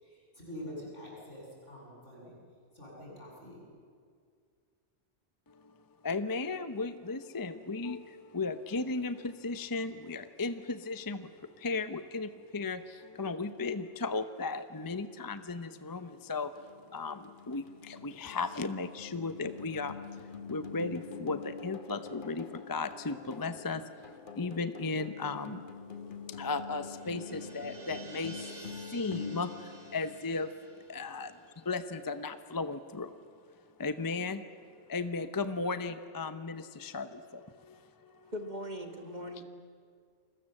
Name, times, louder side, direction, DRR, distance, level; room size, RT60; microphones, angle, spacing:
voice 1, 0.0-2.4 2.7-3.6, left 1 dB, 75° left, -3 dB, 8.0 m, -46 dB
voice 2, 5.5-5.8 6.0-33.2 33.8-34.6 34.9-38.1, left 3 dB, 20° left, 11 dB, 0.7 m, -36 dB
sound 1, 16.6-30.7, left 6 dB, 45° left, 1.3 m, -46 dB
sound 2, 25.5-32.3 32.6-32.7, right 3 dB, 70° right, 3.2 m, -51 dB
voice 3, 38.3-39.4, left 1 dB, 35° right, 5 dB, 1.8 m, -40 dB
29.5 x 21.5 x 7.8 m, 2.1 s
omnidirectional pair, 1.3 m